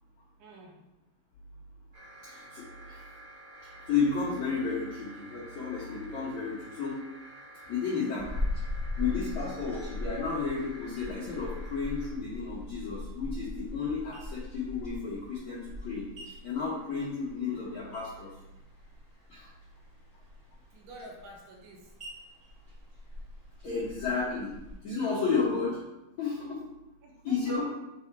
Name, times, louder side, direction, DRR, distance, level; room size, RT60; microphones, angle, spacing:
voice 1, 0.4-0.8 18.4-18.6 20.7-21.9 27.0-27.7, right 1 dB, 75° right, -1 dB, 2.8 m, -49 dB
sound 1, 1.9-12.1, right 1 dB, 50° right, 1.8 m, -50 dB
voice 2, 2.2-3.0 3.9-7.0 7.7-8.3 9.0-16.0 16.4-18.3 19.3-19.5 23.6-24.5 24.8-25.8 26.2-26.6 27.2-27.7, left 5 dB, 70° left, -8 dB, 1.7 m, -32 dB
sound 2, 8.2-24.8, left 1 dB, 25° right, 0.7 m, -40 dB
7.5 x 2.8 x 4.7 m, 0.93 s
omnidirectional pair, 5.1 m